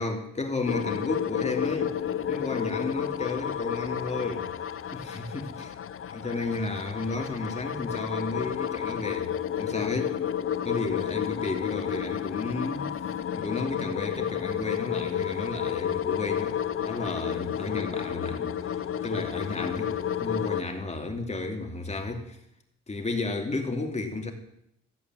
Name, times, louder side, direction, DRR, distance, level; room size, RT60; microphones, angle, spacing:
voice 1, 0.0-2.0 2.3-4.5 4.9-5.7 6.1-10.2 10.6-13.0 13.3-19.9 20.2-22.4 22.9-24.3, left 3 dB, 20° left, 2.7 m, -32 dB
sound 1, 0.7-20.6, left 9 dB, 45° left, 0.8 m, -31 dB
14.5 x 8.4 x 7.7 m
cardioid pair, 90°, 30 cm